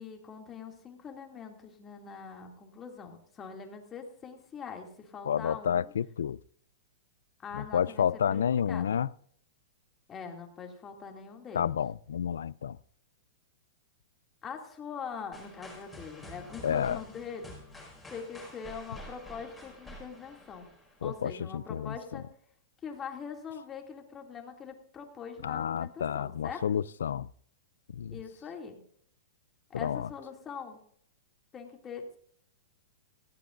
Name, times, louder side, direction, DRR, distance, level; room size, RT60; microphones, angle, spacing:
voice 1, 0.0-5.9 7.4-9.0 10.1-11.8 14.4-20.7 21.0-22.3 22.8-26.7 28.1-28.8 29.7-30.8 31.5-32.2, left 6 dB, 20° left, 2.5 m, -43 dB
voice 2, 5.3-6.4 7.5-9.1 11.5-12.8 16.6-17.0 21.0-22.0 25.4-27.3 27.9-28.2 29.7-30.1, left 8 dB, 85° left, 0.4 m, -30 dB
sound 1, 15.3-21.2, left 1 dB, 5° left, 5.2 m, -49 dB
18.0 x 15.5 x 2.6 m
hypercardioid pair, 140°, 0 cm